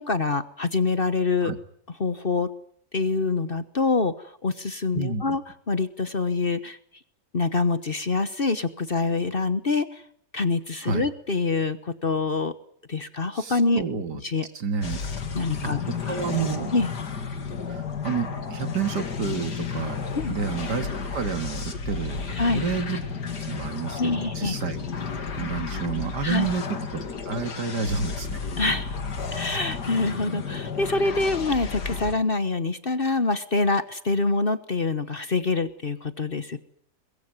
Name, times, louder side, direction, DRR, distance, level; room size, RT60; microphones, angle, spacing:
voice 1, 0.0-1.5 2.0-2.5 2.9-6.8 7.3-10.0 10.3-12.5 12.9-13.8 14.2-14.5 15.3-15.8 16.1-16.3 16.7-16.9 20.1-20.4 22.4-22.6 24.0-24.6 26.2-26.5 28.6-29.0 29.3-36.6, left 3 dB, 35° left, 13 dB, 1.2 m, -25 dB
voice 2, 4.9-5.4 10.8-11.1 13.3-14.2 14.5-15.0 15.6-15.7 16.1-16.7 17.7-20.9 21.1-23.0 23.4-24.8 25.4-28.4, right 5 dB, 75° right, 9 dB, 2.6 m, -30 dB
sound 1, 14.8-32.2, left 5 dB, 75° left, 2.8 m, -32 dB
22.5 x 22.0 x 9.6 m, 0.67 s
omnidirectional pair, 1.8 m